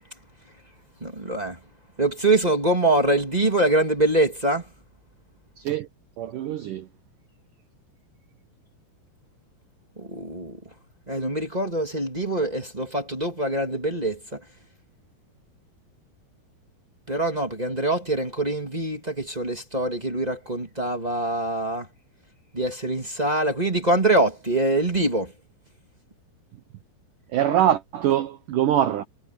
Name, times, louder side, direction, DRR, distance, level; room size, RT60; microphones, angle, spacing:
voice 1, 1.0-1.6 2.0-4.6 10.0-10.6 11.1-14.4 17.1-21.9 22.5-25.3, right 2 dB, 15° right, 1.3 m, -24 dB
voice 2, 5.6-5.9 6.2-6.9 27.3-29.0, right 11 dB, 70° right, 2.1 m, -23 dB
omnidirectional pair, 5.1 m